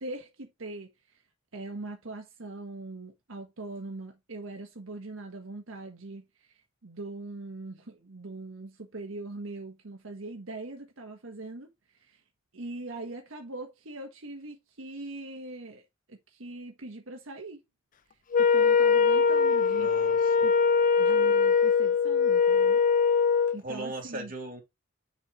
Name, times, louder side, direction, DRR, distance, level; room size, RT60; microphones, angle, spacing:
voice 1, 0.0-1.2 1.5-12.2 12.5-17.6 18.4-19.9 20.4-20.5 21.0-22.8 23.5-24.3, right 2 dB, 85° right, 1.3 m, -41 dB
Wind instrument woodwind instrument, 18.3-23.6, left 5 dB, 40° left, 0.5 m, -22 dB
voice 2, 19.8-20.3 23.6-24.6, right 2 dB, 45° right, 2.6 m, -38 dB
7.1 x 4.3 x 4.5 m
head